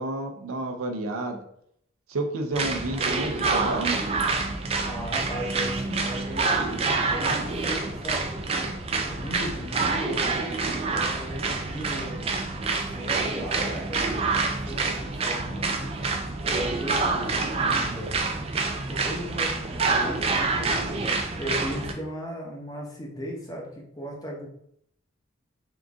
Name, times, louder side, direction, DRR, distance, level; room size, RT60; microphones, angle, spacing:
voice 1, 0.0-1.4 2.1-4.0, right 2 dB, 85° right, 4 dB, 0.6 m, -30 dB
sound 1, 2.5-21.9, right 3 dB, 30° right, 0.3 m, -27 dB
voice 2, 4.8-8.7 9.0-10.5 10.9-16.0 16.5-18.2 18.9-23.7 23.9-24.5, equal, 20° left, -2 dB, 0.8 m, -37 dB
3.7 x 2.5 x 3.6 m, 0.71 s
head